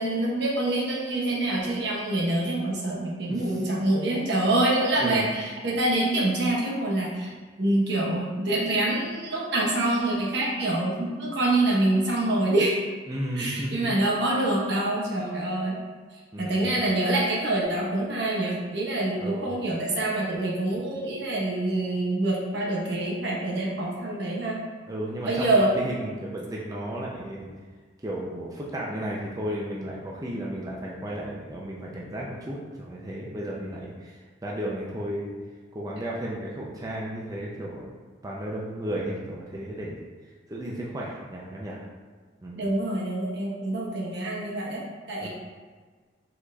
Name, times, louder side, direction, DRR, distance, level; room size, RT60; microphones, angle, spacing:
voice 1, 0.0-7.3 7.6-12.8 13.4-15.8 16.4-24.6 25.2-25.7 42.5-45.3, right 1 dB, 65° right, -3 dB, 1.0 m, -26 dB
voice 2, 3.3-3.9 5.0-5.3 13.1-13.9 16.3-16.7 19.2-19.5 24.9-27.6 28.0-35.3 35.7-37.9 38.2-40.0 40.5-41.8 42.4-42.6 45.2-45.3, right 1 dB, 20° right, -4 dB, 0.5 m, -34 dB
5.1 x 4.0 x 2.3 m, 1.5 s
head